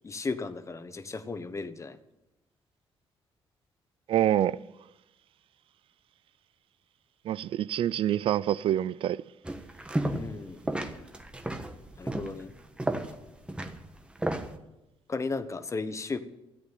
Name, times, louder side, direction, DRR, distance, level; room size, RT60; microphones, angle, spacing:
voice 1, 0.0-2.0 10.1-10.6 12.0-12.5 15.1-16.2, left 4 dB, 30° left, 1.1 m, -35 dB
voice 2, 4.1-4.6 7.2-9.2, right 11 dB, 65° right, 0.4 m, -26 dB
sound 1, 9.4-10.4 10.6-14.5, right 1 dB, 10° right, 1.3 m, -33 dB
13.5 x 8.4 x 9.1 m
cardioid pair, 90°, 10 cm